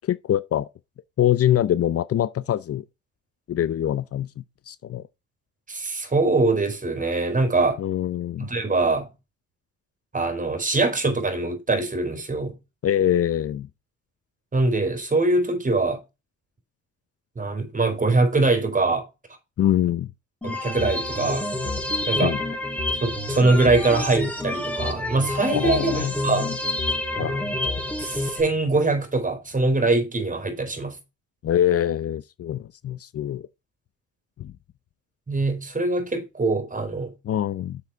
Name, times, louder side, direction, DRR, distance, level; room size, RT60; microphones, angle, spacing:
voice 1, 0.0-0.7 1.2-2.8 3.5-5.0 7.8-8.5 12.8-13.7 19.6-20.1 22.2-22.4 25.4-26.6 27.2-27.5 31.4-33.5 34.4-34.5 37.2-37.8, left 11 dB, 50° left, 0.6 m, -24 dB
voice 2, 5.7-7.8 8.4-9.1 10.1-12.6 14.5-16.0 17.4-19.1 20.4-21.5 22.1-22.3 23.0-26.5 27.2-27.3 28.0-31.0 35.3-37.1, right 3 dB, 25° right, 4.2 m, -23 dB
sound 1, 20.4-28.4, left 1 dB, 5° left, 4.5 m, -28 dB
7.3 x 6.7 x 4.7 m
cardioid pair, 90°, 30 cm